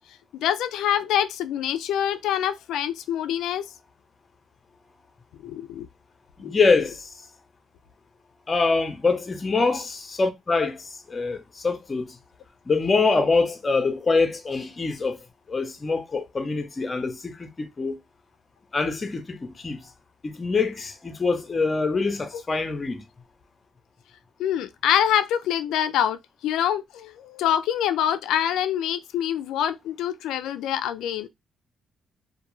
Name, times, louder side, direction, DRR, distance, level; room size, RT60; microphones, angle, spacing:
voice 1, 0.3-3.6 5.4-5.9 6.4-6.6 24.4-31.3, left 10 dB, 85° left, 0.3 m, -25 dB
voice 2, 6.4-7.1 8.5-12.2 12.7-15.2 15.5-18.0 18.7-19.9 20.2-23.0, left 4 dB, 30° left, 0.6 m, -24 dB
2.3 x 2.2 x 3.0 m
cardioid pair, 90°, 0 cm